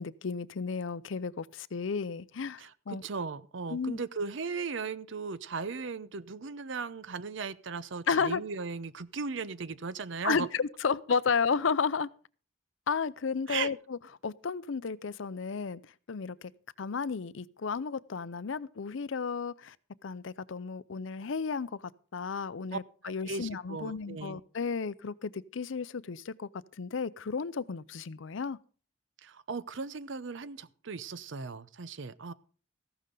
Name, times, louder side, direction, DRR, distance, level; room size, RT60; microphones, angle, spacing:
voice 1, 0.0-3.0 3.7-4.0 8.1-8.4 10.2-12.1 12.9-15.8 16.1-16.5 16.8-19.7 20.0-21.8 22.1-26.5 26.8-28.6, left 5 dB, 70° left, 0.5 m, -33 dB
voice 2, 2.6-10.5 13.5-13.7 22.7-24.4 29.2-32.3, right 4 dB, 70° right, 0.6 m, -37 dB
15.0 x 12.0 x 3.8 m
head